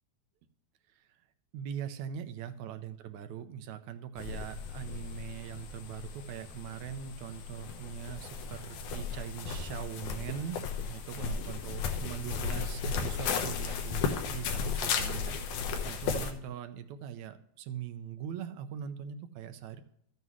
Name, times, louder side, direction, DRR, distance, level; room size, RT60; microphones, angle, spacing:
voice 1, 1.5-19.8, right 9 dB, 80° right, 9 dB, 2.0 m, -41 dB
sound 1, 4.2-16.3, left 6 dB, 85° left, 2.5 m, -35 dB
13.5 x 8.0 x 3.1 m, 0.71 s
omnidirectional pair, 3.4 m